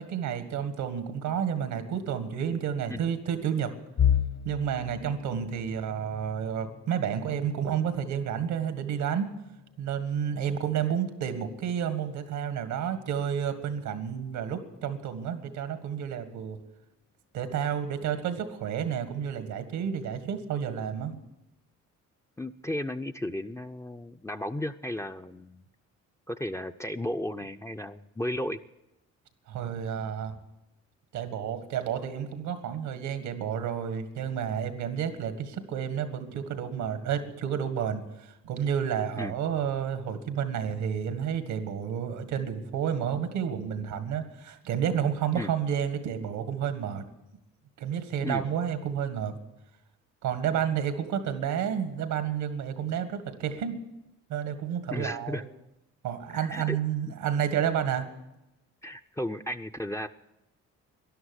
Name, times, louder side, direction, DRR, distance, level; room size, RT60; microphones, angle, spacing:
voice 1, 0.0-3.7 4.5-9.3 9.8-16.6 17.3-21.2 29.5-30.4 31.1-47.0 47.8-49.3 50.2-53.8 54.3-55.4 56.0-58.1, right 8 dB, 90° right, 9 dB, 1.8 m, -30 dB
sound 1, 4.0-15.8 16.2-16.5 16.9-17.0 17.9-18.4, left 9 dB, 55° left, 1.4 m, -36 dB
voice 2, 22.4-25.6 26.3-28.6 39.2-39.3 45.3-45.5 48.2-48.5 54.9-55.4 56.3-56.8 57.1-57.2 58.8-60.1, left 1 dB, 10° left, 11 dB, 0.5 m, -34 dB
12.5 x 11.0 x 9.7 m, 0.93 s
cardioid pair, 90°, 30 cm